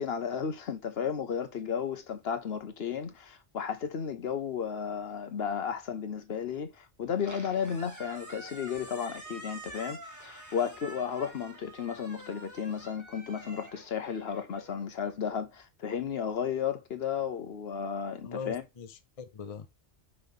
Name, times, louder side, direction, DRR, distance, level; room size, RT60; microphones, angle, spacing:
voice 1, 0.0-18.6, left 7 dB, 65° left, 1.0 m, -34 dB
Squeak, 7.1-15.3, right 1 dB, 15° right, 1.6 m, -47 dB
voice 2, 18.2-19.7, left 6 dB, 35° left, 0.7 m, -41 dB
5.5 x 3.3 x 5.6 m
omnidirectional pair, 1.2 m